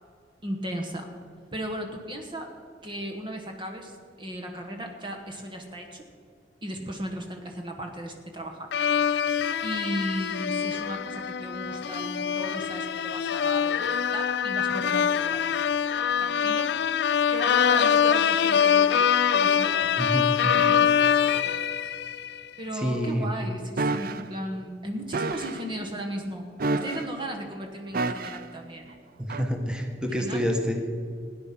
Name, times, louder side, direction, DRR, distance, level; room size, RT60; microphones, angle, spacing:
voice 1, 0.4-1.1 1.5-2.5 2.8-6.0 6.6-8.7 9.6-15.6 16.2-16.7 17.3-19.1 19.3-19.9 20.5-21.6 22.6-29.0 30.2-30.5, right 1 dB, 30° right, 2 dB, 1.2 m, -36 dB
sound 1, 8.7-22.4, left 8 dB, 70° left, 0.4 m, -24 dB
voice 2, 20.0-20.3 22.7-23.3 29.2-30.8, equal, 5° right, 3 dB, 1.3 m, -27 dB
sound 2, 23.8-24.2 25.1-25.6 26.6-27.2 27.9-28.5 29.3-29.5, right 3 dB, 55° right, 0.6 m, -29 dB
17.0 x 10.0 x 5.9 m, 2.3 s
head